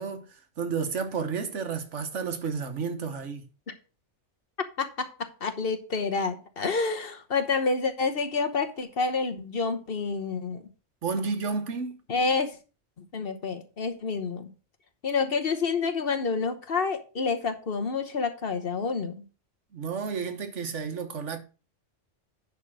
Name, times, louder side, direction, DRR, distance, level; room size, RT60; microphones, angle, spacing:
voice 1, 0.0-3.4 11.0-12.0 19.7-21.4, right 5 dB, 80° right, 1.5 m, -31 dB
voice 2, 4.8-10.6 12.1-12.6 13.1-14.5 15.0-19.1, left 4 dB, 55° left, 1.2 m, -28 dB
10.5 x 3.7 x 6.2 m
omnidirectional pair, 1.2 m